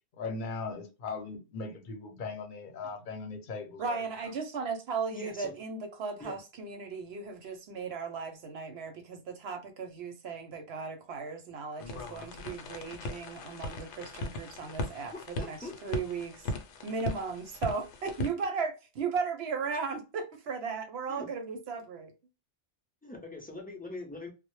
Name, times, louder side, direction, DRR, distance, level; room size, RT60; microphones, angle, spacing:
voice 1, 0.2-4.0, left 4 dB, 50° left, 0.7 m, -39 dB
voice 2, 3.8-16.5 16.8-22.1, right 5 dB, 70° right, 0.8 m, -36 dB
voice 3, 5.1-5.6 6.2-6.4 15.1-15.8 21.1-21.3 23.0-24.3, left 2 dB, 15° left, 0.4 m, -43 dB
sound 1, 11.8-18.3, left 2 dB, 75° left, 0.9 m, -38 dB
2.1 x 2.1 x 2.9 m
omnidirectional pair, 1.2 m